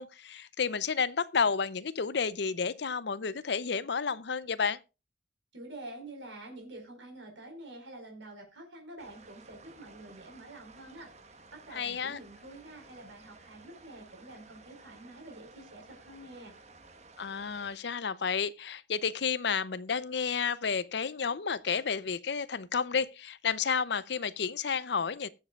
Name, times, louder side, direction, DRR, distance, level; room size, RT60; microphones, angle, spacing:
voice 1, 0.0-4.8 11.7-12.2 17.2-25.3, left 6 dB, 65° left, 0.6 m, -31 dB
voice 2, 5.5-11.1 11.5-16.5, right 1 dB, 85° right, 4.7 m, -48 dB
sound 1, 9.0-17.8, right 3 dB, 35° right, 1.3 m, -55 dB
21.0 x 7.4 x 2.4 m
head